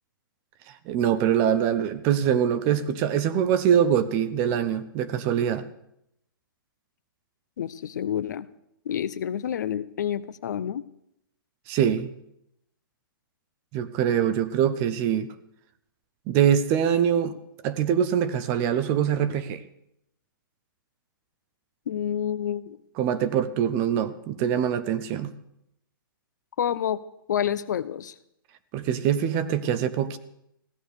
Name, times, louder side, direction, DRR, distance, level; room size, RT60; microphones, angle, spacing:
voice 1, 0.9-5.7 11.7-12.1 13.7-15.3 16.3-17.3 17.6-19.6 23.0-25.3 28.7-30.2, right 9 dB, 20° right, 13 dB, 0.5 m, -23 dB
voice 2, 7.6-8.5 8.9-10.8 21.9-22.8 26.6-27.0 27.3-28.1, left 9 dB, 50° left, 15 dB, 0.7 m, -28 dB
16.0 x 11.0 x 6.6 m, 0.77 s
hypercardioid pair, 170°, 12 cm